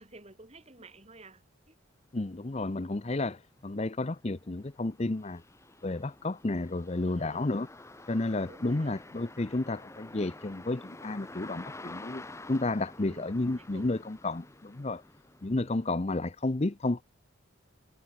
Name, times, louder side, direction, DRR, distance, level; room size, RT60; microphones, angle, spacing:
voice 1, 0.0-1.8 7.0-7.5 8.4-9.0 13.0-13.3 13.6-13.9, right 2 dB, 30° right, 2.6 m, -52 dB
voice 2, 2.1-5.4 5.8-7.7 8.1-12.2 12.5-15.0 15.4-17.0, left 2 dB, 30° left, 0.7 m, -31 dB
sound 1, 3.4-16.0, left 2 dB, 15° left, 1.3 m, -49 dB
head